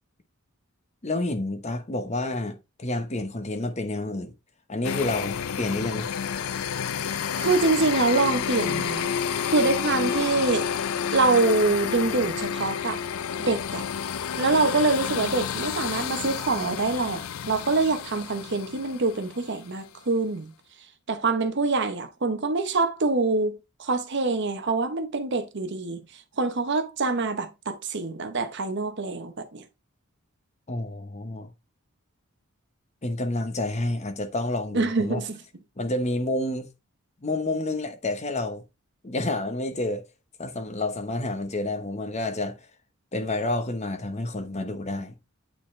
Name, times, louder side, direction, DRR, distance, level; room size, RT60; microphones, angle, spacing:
voice 1, 1.0-4.3 4.7-6.1 30.7-31.5 33.0-35.2 35.8-36.7 37.2-38.6 39.0-40.0 40.4-42.6 43.1-45.1, left 2 dB, 30° left, 0.9 m, -29 dB
sound 1, 4.8-19.6, left 8 dB, 80° left, 0.5 m, -30 dB
voice 2, 7.4-9.1 9.5-10.7 11.1-13.0 13.4-13.8 14.4-20.5 21.1-26.0 26.4-29.6 34.7-35.4, right 3 dB, 55° right, 0.9 m, -25 dB
8.9 x 4.0 x 3.2 m
head